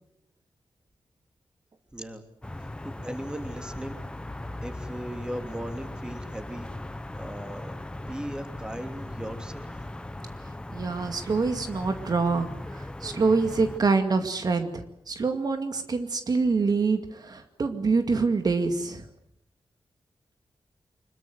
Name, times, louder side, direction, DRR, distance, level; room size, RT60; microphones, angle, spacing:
voice 1, 1.9-2.2 2.8-4.0 4.6-6.7 7.1-7.7 8.1-9.7, equal, 10° right, 6 dB, 3.1 m, -37 dB
sound 1, 2.4-13.8, left 1 dB, 10° left, 1.1 m, -38 dB
voice 2, 10.7-19.1, right 4 dB, 50° right, 7 dB, 2.2 m, -26 dB
25.5 x 22.0 x 7.9 m, 0.74 s
wide cardioid pair, 150°, 9 cm